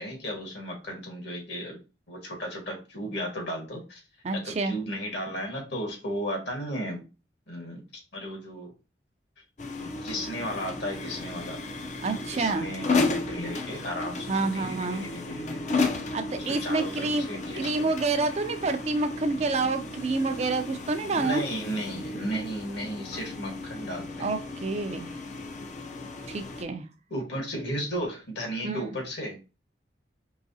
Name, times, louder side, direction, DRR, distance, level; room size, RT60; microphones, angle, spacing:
voice 1, 0.0-1.8 2.1-4.0 4.3-7.1 7.5-8.7 9.8-11.6 12.1-17.9 21.2-24.3 27.1-29.4, equal, 65° left, 2 dB, 1.6 m, -35 dB
voice 2, 4.2-4.8 12.0-12.7 14.3-15.1 16.1-17.3 17.6-21.4 24.2-25.1 26.3-26.9 28.6-28.9, right 3 dB, 35° right, 7 dB, 0.4 m, -28 dB
sound 1, 9.6-26.6, left 3 dB, 40° left, 0.5 m, -34 dB
4.8 x 3.1 x 2.7 m, 0.31 s
head